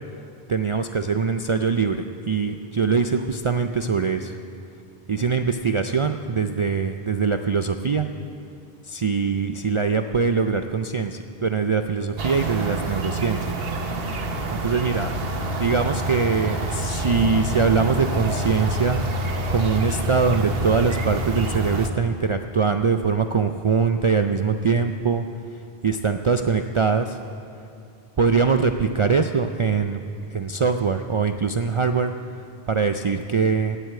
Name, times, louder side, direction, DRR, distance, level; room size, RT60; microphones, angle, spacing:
voice 1, 0.5-4.4 5.1-8.1 8.9-13.6 14.5-15.1 15.5-25.2 25.8-27.2 28.2-30.0 30.3-32.1 32.7-33.8, right 5 dB, 50° right, 7 dB, 0.4 m, -22 dB
sound 1, 12.2-21.9, right 1 dB, 70° right, 1.3 m, -27 dB
18.0 x 7.9 x 7.6 m, 2.5 s
omnidirectional pair, 1.0 m